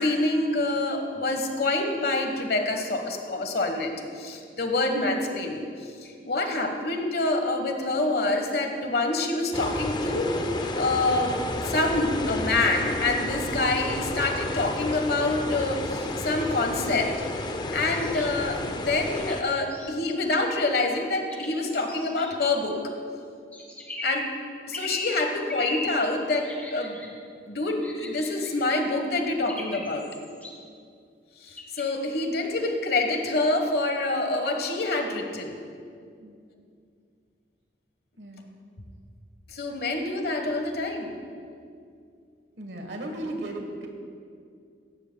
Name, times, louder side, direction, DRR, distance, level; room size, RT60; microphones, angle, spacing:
voice 1, 0.0-5.7 6.0-10.3 10.8-11.4 11.6-17.1 17.7-22.8 24.0-24.3 24.7-27.1 27.5-30.1 31.4-35.5 39.5-41.1, left 2 dB, 60° left, 4 dB, 1.2 m, -26 dB
sound 1, 9.5-19.4, left 1 dB, 25° left, 0.5 m, -31 dB
sound 2, 18.0-18.3 19.2-19.9 21.3-22.3 23.5-24.3 24.7-25.1 25.5-25.9 26.4-27.1 27.8-28.5 29.5-30.5 31.5-32.1, left 1 dB, 10° left, 1.6 m, -38 dB
voice 2, 38.2-38.5 42.6-43.9, right 1 dB, 85° right, 3 dB, 1.3 m, -36 dB
16.5 x 13.0 x 2.2 m, 2.3 s
head